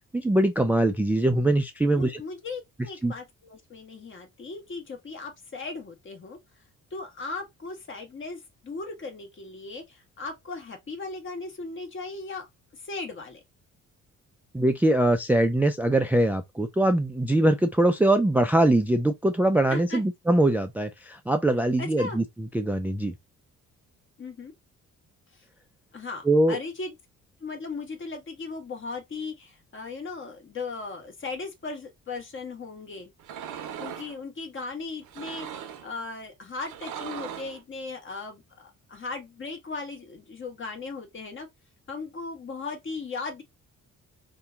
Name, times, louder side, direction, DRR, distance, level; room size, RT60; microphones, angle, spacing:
voice 1, 0.1-2.2 3.0-3.1 14.5-23.1 26.3-26.6, right 1 dB, 5° right, 0.3 m, -22 dB
voice 2, 1.9-6.4 6.9-12.5 12.7-13.4 19.7-20.0 21.8-22.2 24.2-24.5 25.3-25.4 25.9-26.9 27.4-33.1 33.5-41.5 41.9-43.4, left 3 dB, 40° left, 1.3 m, -37 dB
sound 1, 33.2-34.1 35.0-35.9 36.6-37.6, right 9 dB, 80° right, 0.7 m, -38 dB
2.8 x 2.2 x 3.6 m
cardioid pair, 90°, 30 cm